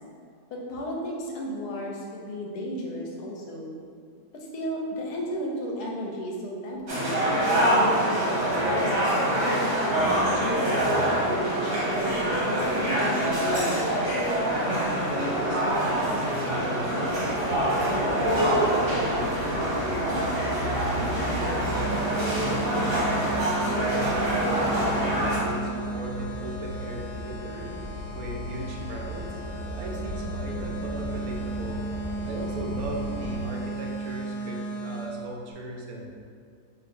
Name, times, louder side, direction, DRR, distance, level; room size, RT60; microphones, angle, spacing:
voice 1, 0.5-3.7 4.3-7.2 7.7-13.2, equal, 75° left, -2 dB, 1.2 m, -34 dB
sound 1, 6.9-25.4, right 1 dB, 50° right, 1.1 m, -25 dB
voice 2, 14.8-17.2 17.7-20.3 20.6-23.9 24.2-27.8 28.1-29.3 29.7-31.8 32.2-36.2, right 1 dB, 70° right, 0 dB, 0.9 m, -37 dB
sound 2, 17.1-33.4, equal, 15° right, 0.9 m, -37 dB
sound 3, 21.6-35.1, right 3 dB, 55° left, 0.5 m, -35 dB
5.1 x 2.7 x 2.5 m, 2.3 s
omnidirectional pair, 1.7 m